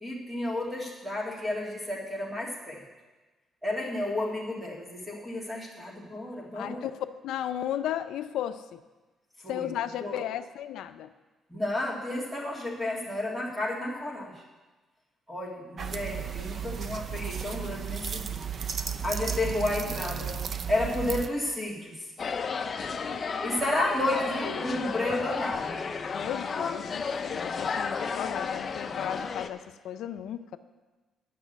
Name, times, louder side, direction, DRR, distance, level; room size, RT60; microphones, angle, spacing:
voice 1, 0.0-2.8 3.6-6.9 9.4-9.7 10.0-10.2 11.5-14.4 15.3-18.5 19.0-20.4 20.7-22.0 23.4-25.8, left 1 dB, 10° right, -2 dB, 2.1 m, -32 dB
voice 2, 6.5-7.0 7.2-8.8 9.5-11.1 26.1-30.6, left 10 dB, 85° left, 10 dB, 0.4 m, -35 dB
sound 1, 15.8-21.3, right 7 dB, 45° right, 0.5 m, -34 dB
sound 2, 22.2-29.5, left 5 dB, 35° left, 0.6 m, -33 dB
9.6 x 6.1 x 8.0 m, 1.2 s
cardioid pair, 145°, 0 cm